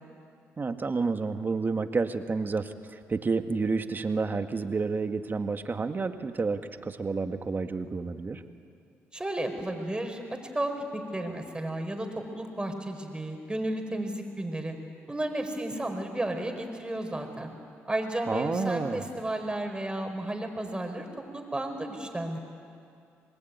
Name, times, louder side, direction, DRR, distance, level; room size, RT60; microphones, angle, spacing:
voice 1, 0.6-8.4 18.3-19.0, right 4 dB, 35° right, 7 dB, 1.8 m, -30 dB
voice 2, 9.1-14.8 15.1-17.5 17.9-22.4, right 1 dB, 15° right, 5 dB, 5.0 m, -33 dB
26.0 x 20.5 x 9.6 m, 2.5 s
supercardioid pair, 60°, 6 cm